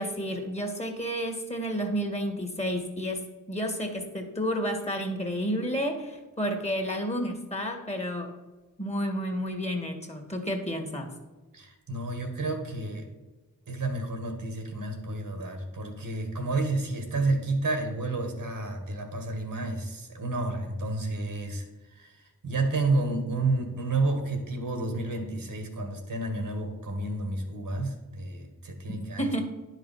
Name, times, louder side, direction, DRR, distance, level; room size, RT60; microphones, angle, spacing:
voice 1, 0.0-8.3 8.8-11.1 29.2-29.4, equal, 20° left, 3 dB, 1.8 m, -31 dB
voice 2, 11.5-13.1 13.7-21.7 21.9-29.3, right 2 dB, 70° right, 4 dB, 1.9 m, -30 dB
10.0 x 5.0 x 5.6 m, 1.2 s
cardioid pair, 55°, 35 cm